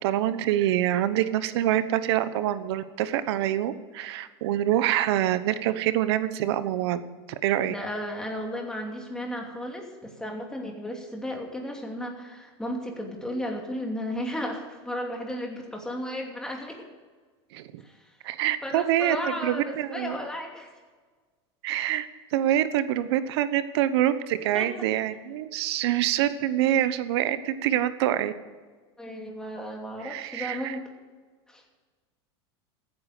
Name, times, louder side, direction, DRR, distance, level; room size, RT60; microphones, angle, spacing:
voice 1, 0.0-7.0 7.4-7.7 17.5-17.8 18.2-20.2 21.6-28.3 30.0-30.8, right 12 dB, 75° right, 13 dB, 1.0 m, -26 dB
voice 2, 7.7-16.8 17.8-18.1 18.6-20.7 24.5-24.7 29.0-30.8 31.5-31.6, equal, 5° left, 1 dB, 2.7 m, -34 dB
15.0 x 9.6 x 6.7 m, 1.4 s
supercardioid pair, 140°, 14 cm